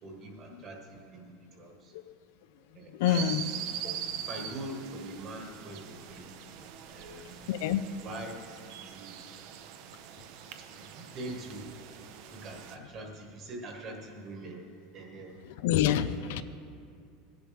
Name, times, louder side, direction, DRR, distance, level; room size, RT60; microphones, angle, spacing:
voice 1, 0.0-1.9 2.7-3.3 3.8-6.3 6.9-7.5 8.0-8.4 8.8-9.3 10.6-11.7 12.3-14.6 14.9-15.4 16.2-16.4, right 1 dB, 35° right, 2 dB, 1.5 m, -43 dB
voice 2, 2.9-3.5 7.5-7.9 15.4-16.4, left 10 dB, 70° left, 12 dB, 0.4 m, -28 dB
sound 1, 3.0-12.8, right 9 dB, 55° right, 0.7 m, -42 dB
16.0 x 10.5 x 3.5 m, 2.4 s
supercardioid pair, 160°, 0 cm